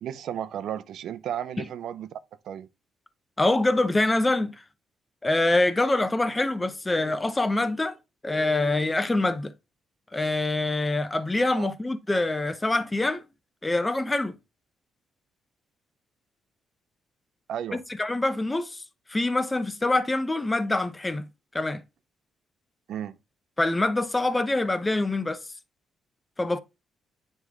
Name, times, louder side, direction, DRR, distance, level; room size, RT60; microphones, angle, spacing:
voice 1, 0.0-2.1 2.4-2.7 11.5-11.7 17.5-17.8 22.9-23.2, right 10 dB, 70° right, 0.6 m, -33 dB
voice 2, 3.4-4.5 5.2-8.0 8.2-9.5 10.1-13.2 13.6-14.4 17.7-18.8 19.1-21.3 21.5-21.8 23.6-25.4 26.4-26.6, left 2 dB, 15° left, 0.8 m, -25 dB
9.4 x 3.2 x 3.5 m
cardioid pair, 90°, 0 cm